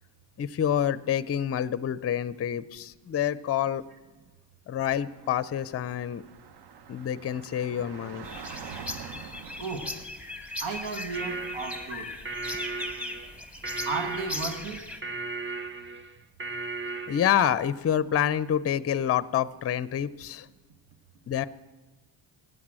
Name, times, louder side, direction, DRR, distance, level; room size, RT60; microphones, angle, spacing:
voice 1, 0.4-3.8 4.7-6.2 6.9-8.4 17.1-20.5 21.3-21.5, left 9 dB, 30° left, 0.5 m, -27 dB
Car / Traffic noise roadway noise, 5.0-10.0, right 7 dB, 60° right, 0.9 m, -45 dB
sound 1, 8.2-15.0, left 2 dB, 5° right, 1.3 m, -38 dB
voice 2, 9.6-10.0 10.6-12.2 13.8-14.9, right 4 dB, 80° right, 1.5 m, -34 dB
sound 2, 11.1-17.6, right 3 dB, 25° right, 0.9 m, -36 dB
15.5 x 9.5 x 7.5 m
cardioid pair, 85°, 46 cm